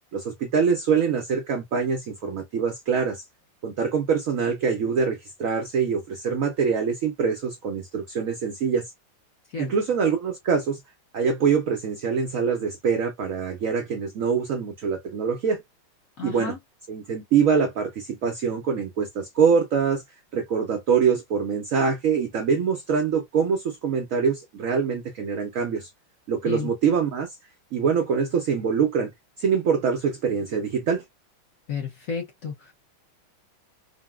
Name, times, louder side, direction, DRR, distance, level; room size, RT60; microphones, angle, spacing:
voice 1, 0.1-3.2 3.6-8.9 9.6-10.8 11.1-15.6 16.2-16.5 16.9-20.0 20.3-25.9 26.3-27.3 27.7-29.1 29.4-31.0, right 6 dB, 85° right, 0.7 m, -24 dB
voice 2, 16.2-16.6 26.4-26.7 31.7-32.7, left 6 dB, 60° left, 0.9 m, -32 dB
3.8 x 2.1 x 2.2 m
omnidirectional pair, 2.2 m